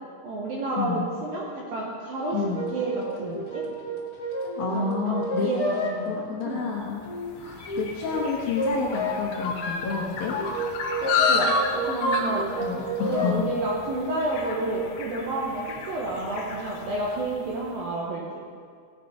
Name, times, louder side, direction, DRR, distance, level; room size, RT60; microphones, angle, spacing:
voice 1, 0.2-2.4 2.7-3.7 4.7-6.6 11.0-12.5 13.0-18.4, right 2 dB, 75° right, -3 dB, 2.1 m, -30 dB
sound 1, 2.2-5.9 7.0-7.2 7.6-8.2 8.5-9.1 10.2-13.3, equal, 55° left, 1.0 m, -30 dB
voice 2, 2.3-2.6 4.6-5.5 6.1-7.1 7.4-10.3 12.6-13.5, left 5 dB, 70° left, -3 dB, 2.3 m, -29 dB
sound 2, 6.9-17.5, left 3 dB, 90° left, 2.0 m, -31 dB
17.5 x 8.5 x 5.1 m, 2.2 s
omnidirectional pair, 5.9 m